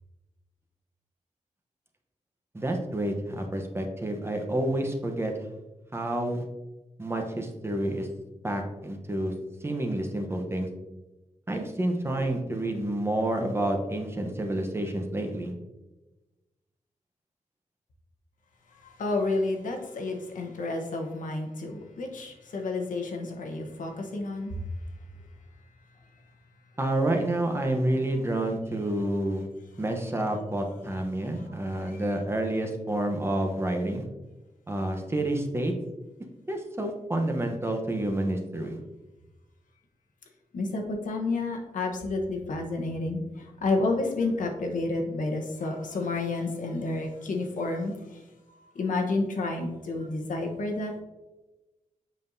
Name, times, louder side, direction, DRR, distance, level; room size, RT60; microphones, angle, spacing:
voice 1, 2.5-5.3 5.9-6.4 7.0-8.1 8.4-9.3 9.6-10.7 11.5-15.5 26.8-29.5 29.8-34.0 34.7-35.7 36.5-38.8, right 1 dB, 20° right, 3 dB, 0.9 m, -29 dB
voice 2, 18.8-24.6 31.4-31.5 31.8-32.0 40.5-48.3 48.7-50.9, left 2 dB, 85° left, 2 dB, 1.1 m, -30 dB
7.6 x 5.5 x 2.7 m, 1.1 s
wide cardioid pair, 125°, 13 cm